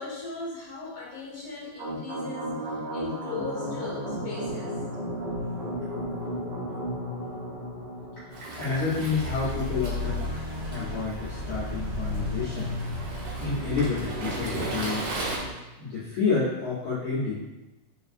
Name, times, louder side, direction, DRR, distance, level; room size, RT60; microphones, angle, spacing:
voice 1, 0.0-4.7, left 3 dB, 35° left, -8 dB, 0.8 m, -38 dB
sound 1, 1.8-15.5, equal, 45° right, 1.6 m, -34 dB
Waves surf, 8.3-15.4, right 2 dB, 70° right, 1.7 m, -37 dB
voice 2, 8.6-10.3 10.7-12.7 13.4-15.1 15.8-17.4, left 4 dB, 85° left, -9 dB, 1.1 m, -29 dB
4.5 x 3.2 x 2.5 m, 1.0 s
omnidirectional pair, 3.5 m